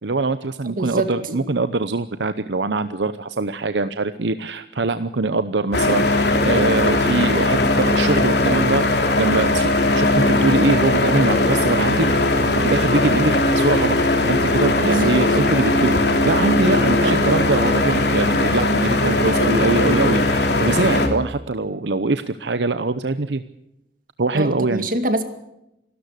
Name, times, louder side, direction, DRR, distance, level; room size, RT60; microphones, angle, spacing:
voice 1, 0.0-12.1 12.6-14.0 14.3-23.4 24.2-24.9, right 3 dB, 75° right, 11 dB, 0.8 m, -23 dB
voice 2, 0.7-1.5 14.9-15.2 17.0-17.3 24.3-25.2, right 2 dB, 50° right, 8 dB, 2.3 m, -25 dB
sound 1, 5.7-21.1, left 2 dB, 65° left, 3.3 m, -19 dB
26.5 x 13.0 x 8.4 m, 0.86 s
head